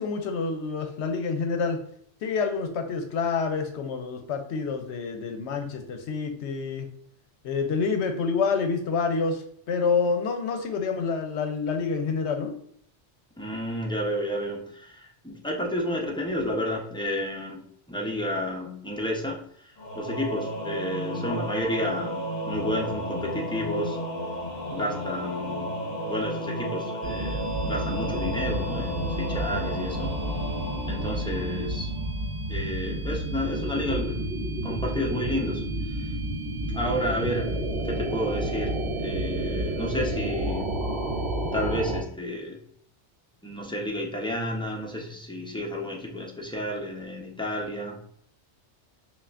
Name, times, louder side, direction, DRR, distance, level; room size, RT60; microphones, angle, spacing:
voice 1, 0.0-1.8 2.2-6.9 7.4-12.5, left 5 dB, 75° left, 5 dB, 0.9 m, -28 dB
voice 2, 13.4-17.6 17.9-24.0 24.7-25.7 26.0-30.1 30.9-31.9 32.5-36.1 36.7-37.6 37.8-38.7 39.0-40.7 41.5-42.6 43.4-48.0, equal, 5° left, -1 dB, 0.4 m, -31 dB
Singing / Musical instrument, 19.8-32.2, equal, 40° left, 1.1 m, -33 dB
sound 1, 27.0-42.0, right 1 dB, 60° right, 0.8 m, -30 dB
5.5 x 2.4 x 2.4 m, 0.63 s
omnidirectional pair, 1.2 m